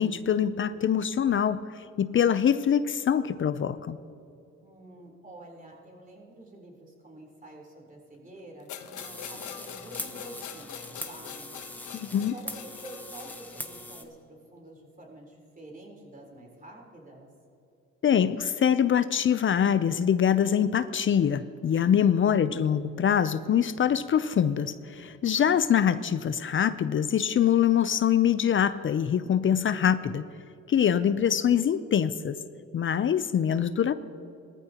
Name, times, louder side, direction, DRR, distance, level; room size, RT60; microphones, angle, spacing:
voice 1, 0.0-4.0 12.1-12.3 18.0-30.3 30.7-32.4 32.7-33.9, left 8 dB, 40° left, 14 dB, 0.5 m, -24 dB
voice 2, 4.6-11.6 11.8-17.3 22.2-22.7, right 2 dB, 25° right, -1 dB, 3.8 m, -48 dB
sound 1, 8.7-14.0, left 9 dB, 80° left, 1.0 m, -44 dB
sound 2, 9.0-14.0, left 1 dB, 5° left, 1.1 m, -42 dB
19.0 x 14.5 x 2.9 m, 2.6 s
cardioid pair, 90°, 30 cm